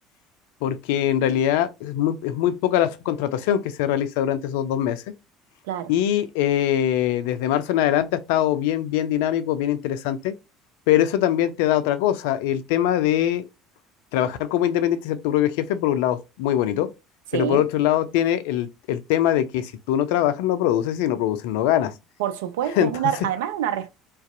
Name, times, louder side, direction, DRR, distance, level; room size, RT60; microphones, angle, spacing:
voice 1, 0.6-5.0 5.9-10.3 10.9-13.4 14.1-16.9 17.3-21.9 22.7-22.9, left 11 dB, 70° left, 0.3 m, -22 dB
voice 2, 17.3-17.6 22.2-23.9, right 11 dB, 75° right, 0.3 m, -26 dB
2.4 x 2.2 x 2.5 m
figure-of-eight pair, 60°, 0 cm